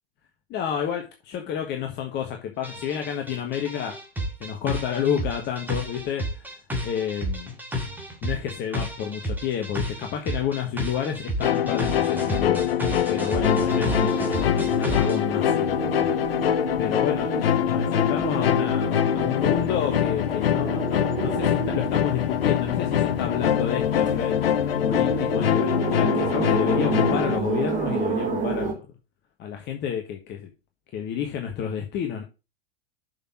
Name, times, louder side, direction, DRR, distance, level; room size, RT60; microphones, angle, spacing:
voice 1, 0.5-3.9 4.4-6.4 6.8-7.5 8.2-12.6 13.1-14.3 14.7-16.1 16.8-24.4 24.8-28.8 29.4-30.5 30.9-32.2, left 8 dB, 35° left, 3 dB, 1.6 m, -30 dB
sound 1, 2.6-15.2, equal, 5° right, 2.6 m, -31 dB
sound 2, 11.4-27.4, left 9 dB, 70° left, 0.9 m, -24 dB
sound 3, 13.4-28.7, right 5 dB, 25° right, 2.9 m, -31 dB
7.2 x 6.0 x 6.1 m, 0.29 s
figure-of-eight pair, 90°, 31 cm